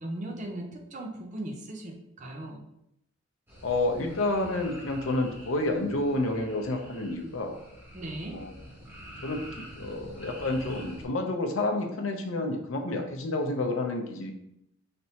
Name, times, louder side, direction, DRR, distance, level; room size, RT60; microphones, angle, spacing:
voice 1, 0.0-2.6 7.9-8.4, right 1 dB, 35° right, 2 dB, 0.6 m, -38 dB
sound 1, 3.5-11.1, equal, 10° right, 0.9 m, -47 dB
voice 2, 3.6-7.6 8.3-8.5 9.2-14.3, left 2 dB, 70° left, 4 dB, 0.6 m, -29 dB
4.2 x 3.3 x 2.8 m, 0.78 s
head